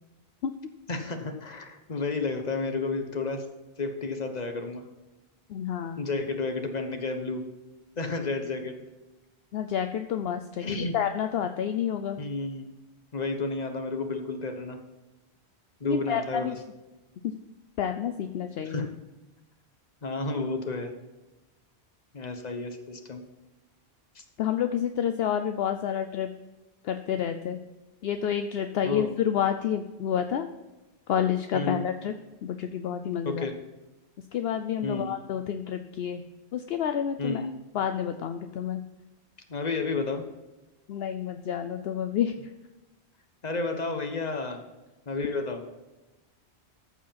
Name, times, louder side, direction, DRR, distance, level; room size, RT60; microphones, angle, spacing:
voice 1, 0.9-3.4 3.8-4.8 6.0-7.4 8.0-8.8 10.6-10.9 12.2-12.7 13.1-14.8 15.8-16.6 18.6-18.9 20.0-20.9 22.1-23.2 24.1-24.2 28.8-29.1 31.5-31.9 33.2-33.6 34.8-35.1 37.2-37.5 39.5-40.2 43.4-44.6 45.1-45.6, left 3 dB, 40° left, 6 dB, 1.2 m, -31 dB
voice 2, 5.5-6.1 9.5-12.2 15.8-16.6 17.2-17.3 17.8-18.9 24.4-26.3 26.8-27.6 28.0-30.5 31.1-32.1 32.4-33.4 34.3-36.2 36.5-37.5 37.7-38.8 40.9-42.3, left 9 dB, 70° left, 8 dB, 0.8 m, -29 dB
14.0 x 4.9 x 5.7 m, 1.1 s
omnidirectional pair, 1.1 m